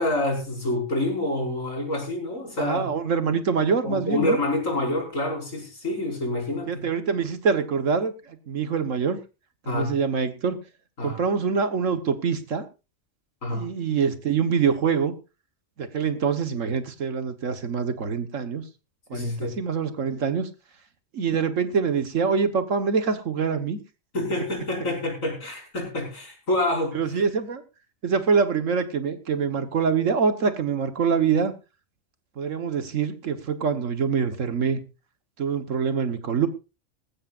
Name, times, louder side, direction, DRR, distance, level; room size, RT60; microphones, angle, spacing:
voice 1, 0.0-2.9 3.8-6.8 9.7-9.9 11.0-11.2 13.4-13.6 19.1-19.5 24.1-27.2, left 1 dB, 75° left, 0 dB, 6.1 m, -27 dB
voice 2, 2.6-4.4 6.7-9.2 9.7-10.6 11.0-12.6 13.5-15.1 15.8-18.6 19.1-20.5 21.1-23.8 26.9-27.6 28.0-31.5 32.4-34.8 35.4-36.5, right 6 dB, 70° right, 9 dB, 1.6 m, -25 dB
19.0 x 15.5 x 2.5 m, 0.30 s
omnidirectional pair, 1.4 m